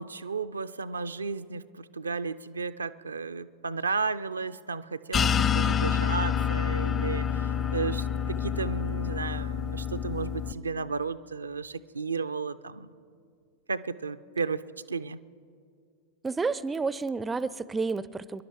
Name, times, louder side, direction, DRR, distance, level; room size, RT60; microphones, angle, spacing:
voice 1, 0.0-12.9 13.7-15.2, right 4 dB, 75° right, 11 dB, 0.4 m, -33 dB
sound 1, 5.1-10.5, left 8 dB, 25° left, 0.7 m, -28 dB
voice 2, 16.2-18.4, right 4 dB, 15° right, 18 dB, 0.4 m, -30 dB
26.0 x 11.0 x 4.7 m, 2.2 s
figure-of-eight pair, 90°, 0 cm